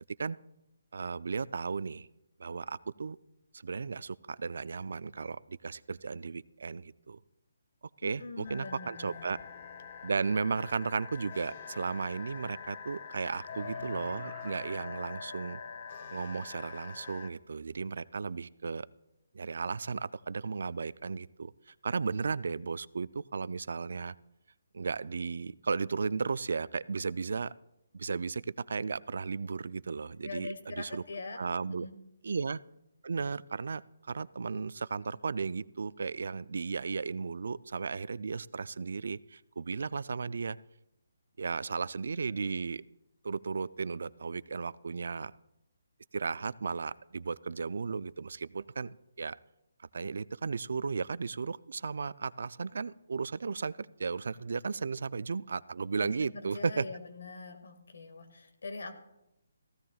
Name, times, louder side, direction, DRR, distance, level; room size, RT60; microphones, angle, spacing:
voice 1, 0.9-2.1 2.4-3.2 3.6-7.2 8.0-9.4 10.0-15.6 16.1-18.9 19.3-24.1 24.7-27.5 27.9-28.4 28.7-31.0 31.4-31.9 32.2-32.6 33.0-33.8 34.1-40.6 41.4-42.8 43.2-45.3 46.1-49.4 49.9-56.8, right 5 dB, 70° right, 19 dB, 0.3 m, -35 dB
voice 2, 8.0-9.4 30.2-32.0 56.0-59.0, left 3 dB, 75° left, 6 dB, 1.9 m, -43 dB
sound 1, 8.4-17.3, left 6 dB, 45° left, 1.0 m, -44 dB
Laughter, 13.4-16.0 16.5-16.6, right 4 dB, 20° right, 1.9 m, -56 dB
15.0 x 15.0 x 2.4 m, 0.87 s
hypercardioid pair, 155°, 0 cm